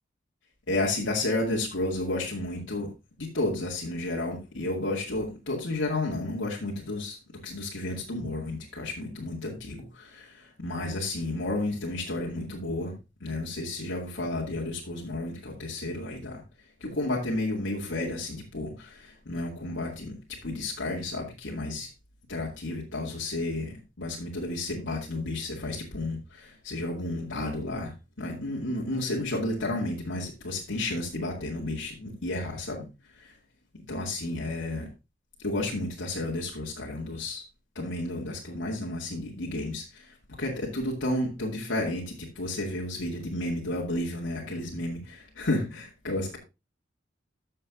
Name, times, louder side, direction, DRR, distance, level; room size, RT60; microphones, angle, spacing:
voice 1, 0.7-2.9 3.2-7.2 7.4-13.0 13.2-16.4 16.8-21.9 22.3-32.8 33.2-33.3 33.7-34.9 35.4-37.4 37.8-46.4, left 2 dB, 90° left, -3 dB, 2.3 m, -32 dB
13.0 x 6.7 x 2.6 m, 0.26 s
head